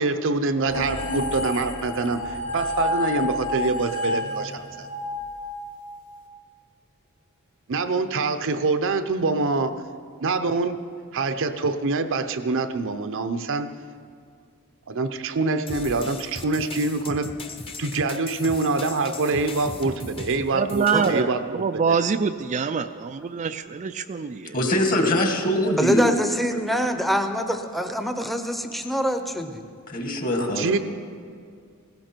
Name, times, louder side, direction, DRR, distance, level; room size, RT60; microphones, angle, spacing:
voice 1, 0.0-4.9 7.7-9.8 10.2-10.8 11.1-13.7 14.9-17.4 17.8-22.0 30.4-30.8, right 3 dB, 60° right, 9 dB, 0.7 m, -25 dB
sound 1, 0.6-6.1, left 1 dB, 80° left, 2.6 m, -30 dB
sound 2, 15.7-21.2, left 2 dB, 25° left, 1.0 m, -38 dB
voice 2, 20.5-24.5, right 5 dB, 35° right, 9 dB, 0.4 m, -25 dB
voice 3, 24.5-26.1 29.9-30.8, left 1 dB, 40° left, 3 dB, 1.8 m, -23 dB
voice 4, 25.8-29.6, equal, ahead, 7 dB, 0.7 m, -25 dB
17.0 x 16.5 x 4.5 m, 2.2 s
head